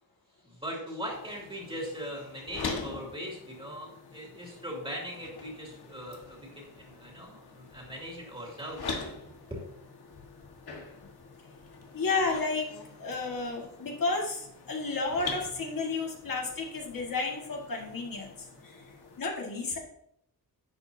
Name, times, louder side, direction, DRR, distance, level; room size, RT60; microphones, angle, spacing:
voice 1, 0.4-8.8 9.5-9.6, equal, 15° right, -2 dB, 2.7 m, -40 dB
sound 1, 1.1-19.2, left 4 dB, 90° left, 1.7 m, -44 dB
voice 2, 11.9-12.7 13.0-18.8 19.2-19.8, left 3 dB, 60° left, -1 dB, 2.0 m, -32 dB
11.0 x 8.2 x 2.8 m, 0.71 s
wide cardioid pair, 155°, 37 cm